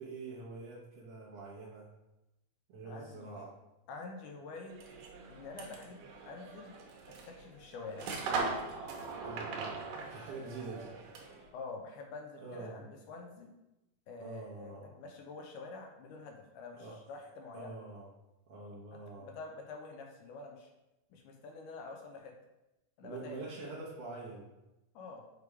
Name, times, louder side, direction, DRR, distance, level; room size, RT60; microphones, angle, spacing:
voice 1, 0.0-1.9 2.7-3.5 9.2-9.8 10.1-10.9 12.4-12.8 14.2-15.0 16.7-17.0 17.5-18.1 18.5-19.3 23.0-24.5, right 3 dB, 65° right, -5 dB, 1.7 m, -45 dB
voice 2, 2.8-3.5 3.9-4.8 5.3-6.7 7.1-8.1 11.5-13.5 14.1-17.8 19.2-20.7 21.1-22.3 23.0-23.5 25.0-25.3, left 3 dB, 80° left, 2 dB, 2.2 m, -47 dB
sound 1, 4.7-11.5, right 4 dB, 80° right, 2.5 m, -40 dB
6.6 x 3.3 x 4.7 m, 0.96 s
omnidirectional pair, 3.8 m